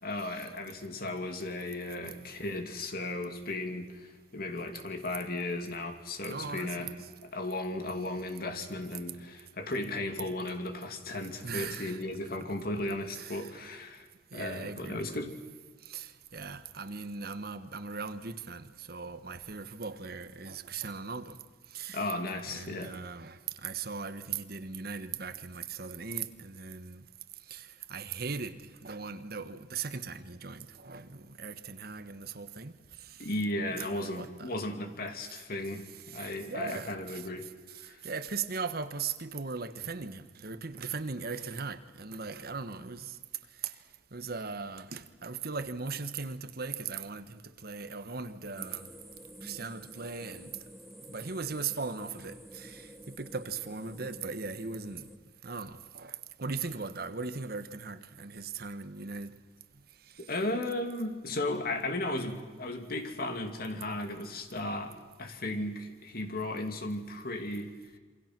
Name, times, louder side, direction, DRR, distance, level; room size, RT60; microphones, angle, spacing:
voice 1, 0.0-15.4 21.9-23.0 33.2-37.5 37.8-38.0 60.2-67.9, left 2 dB, 60° left, 2.7 m, -35 dB
voice 2, 6.2-6.9 11.4-12.0 13.1-13.5 14.3-15.1 15.8-21.4 21.7-22.0 22.5-27.1 27.5-32.7 33.0-33.3 33.7-34.5 36.1-37.2 37.8-43.2 43.6-43.7 44.1-48.9 49.4-50.6 51.1-55.1 55.4-59.4, right 5 dB, 60° right, 1.3 m, -39 dB
sound 1, 48.5-55.2, equal, ahead, 1.7 m, -50 dB
27.5 x 24.5 x 6.1 m
head